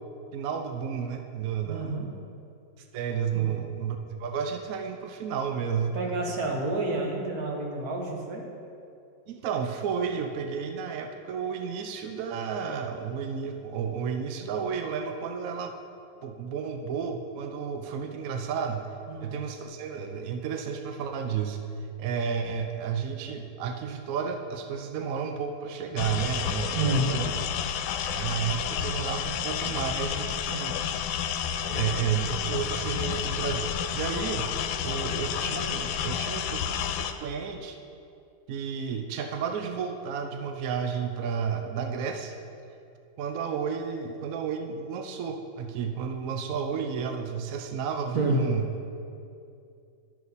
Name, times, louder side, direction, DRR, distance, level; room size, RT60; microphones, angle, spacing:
voice 1, 0.3-1.9 2.9-6.0 9.3-15.7 16.2-18.9 19.2-21.6 22.0-27.3 28.0-30.8 31.7-34.5 34.8-36.6 37.2-37.8 38.5-42.3 43.2-48.6, right 7 dB, 70° right, 5 dB, 0.8 m, -32 dB
voice 2, 1.6-2.1 3.3-3.5 5.9-8.5 19.1-19.4 26.7-27.1 48.1-48.4, right 2 dB, 55° right, 0 dB, 1.5 m, -29 dB
sound 1, 26.0-37.1, left 8 dB, 85° left, 1.3 m, -30 dB
11.5 x 6.9 x 4.0 m, 2.5 s
omnidirectional pair, 2.1 m